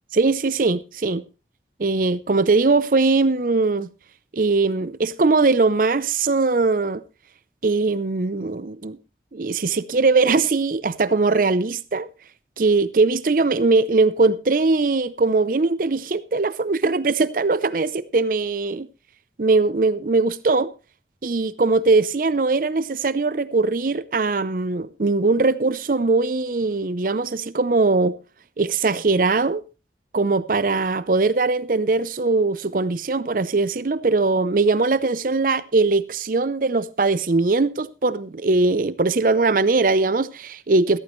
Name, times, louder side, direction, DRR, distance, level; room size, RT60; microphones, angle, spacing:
voice 1, 0.1-1.2 1.8-3.9 4.3-7.0 7.6-9.0 9.3-12.1 12.6-18.9 19.4-20.7 21.2-28.1 28.6-29.6 30.1-41.0, right 3 dB, 50° right, 0.6 m, -20 dB
14.5 x 13.0 x 3.1 m
head